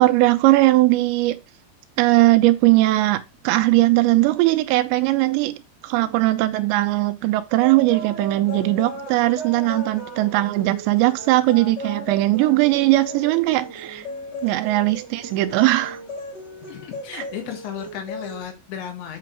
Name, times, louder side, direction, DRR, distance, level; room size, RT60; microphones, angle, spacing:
voice 1, 0.0-1.4 2.0-5.6 5.8-14.1 14.4-16.0 17.1-17.2, right 18 dB, 85° right, 2.7 m, -19 dB
sound 1, 7.6-18.4, right 1 dB, 25° left, 1.5 m, -36 dB
voice 2, 16.6-19.2, left 9 dB, 80° left, 4.0 m, -34 dB
8.4 x 5.0 x 4.6 m
omnidirectional pair, 5.2 m